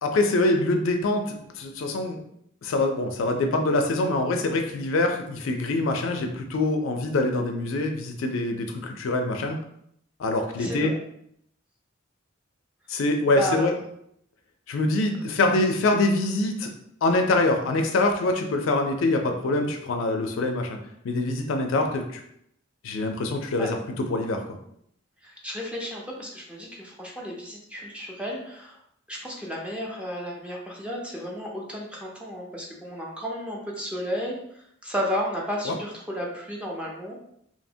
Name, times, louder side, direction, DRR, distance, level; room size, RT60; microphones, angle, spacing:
voice 1, 0.0-2.2 2.6-9.6 10.2-10.9 12.9-13.7 14.7-16.7 17.0-20.8 21.0-22.2 22.8-24.4 35.7-35.8, left 2 dB, 70° left, 4 dB, 0.4 m, -24 dB
voice 2, 10.6-11.0 13.4-13.7 23.6-23.7 25.2-28.8 29.1-37.2, equal, 5° right, -2 dB, 0.5 m, -33 dB
2.7 x 2.1 x 2.6 m, 0.72 s
head